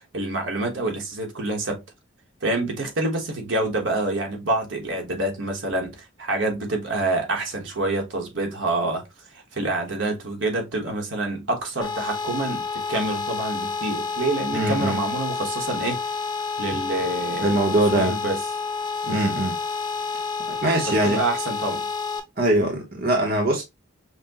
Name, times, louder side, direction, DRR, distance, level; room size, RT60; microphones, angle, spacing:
voice 1, 0.0-1.8 2.4-16.0 16.6-18.4 19.0-19.4 20.9-21.9, right 2 dB, 70° right, 1.2 m, -27 dB
sound 1, 11.8-22.2, left 5 dB, 20° left, 0.5 m, -29 dB
voice 2, 14.5-15.0 17.4-18.2 19.1-19.5 20.5-21.2 22.4-23.6, right 1 dB, 50° right, 0.9 m, -22 dB
5.8 x 2.2 x 2.8 m
head